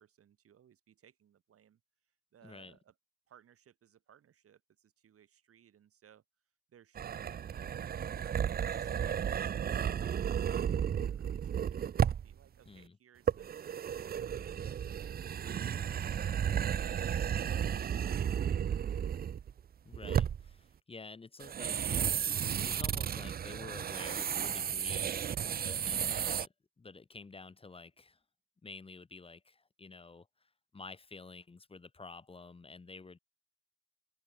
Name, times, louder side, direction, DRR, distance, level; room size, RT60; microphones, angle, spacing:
voice 1, 0.0-1.8 2.3-2.9 3.3-6.2 6.7-7.7 8.1-14.6 15.0-19.0, right 9 dB, 45° right, 5.3 m, -63 dB
voice 2, 2.4-2.8 12.7-13.0 19.9-22.2 22.6-28.2 28.6-33.2, left 3 dB, 20° left, 3.4 m, -50 dB
sound 1, 6.9-12.3 13.3-19.6 19.9-20.5 21.4-26.5, right 8 dB, 30° right, 0.6 m, -33 dB
open air
cardioid pair, 170°, 31 cm